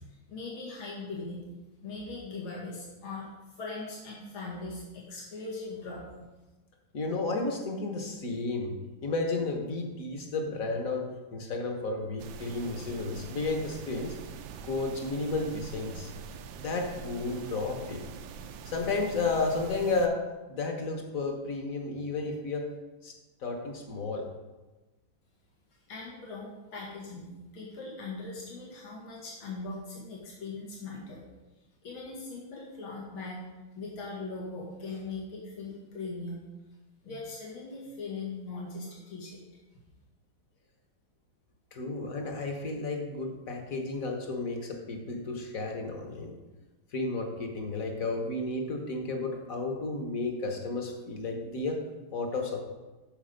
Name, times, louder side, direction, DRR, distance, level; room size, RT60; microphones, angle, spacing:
voice 1, 0.3-1.4 1.8-3.3 3.6-6.0 25.9-31.2 31.8-33.4 33.7-36.4 37.0-39.4, left 3 dB, 90° left, -5 dB, 2.8 m, -40 dB
voice 2, 6.9-8.7 9.0-14.1 14.6-16.1 16.6-18.0 18.6-20.2 20.5-22.7 23.0-23.1 23.4-24.2 41.7-46.3 46.9-51.8 52.1-52.6, left 3 dB, 45° left, 3 dB, 1.4 m, -32 dB
sound 1, 12.2-20.1, right 6 dB, 75° right, 1.3 m, -44 dB
8.7 x 6.5 x 5.2 m, 1.1 s
omnidirectional pair, 2.2 m